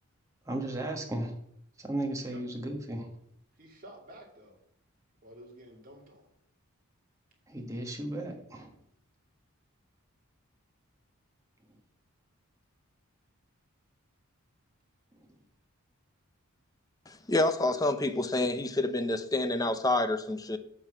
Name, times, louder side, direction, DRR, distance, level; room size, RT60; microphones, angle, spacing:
voice 1, 0.5-1.3 1.8-3.1 7.5-8.7, right 1 dB, 15° right, 1.5 m, -35 dB
voice 2, 3.6-4.5 5.2-6.3, right 1 dB, 40° right, 2.4 m, -51 dB
voice 3, 17.1-20.6, left 2 dB, 15° left, 0.6 m, -28 dB
11.5 x 4.0 x 7.7 m
head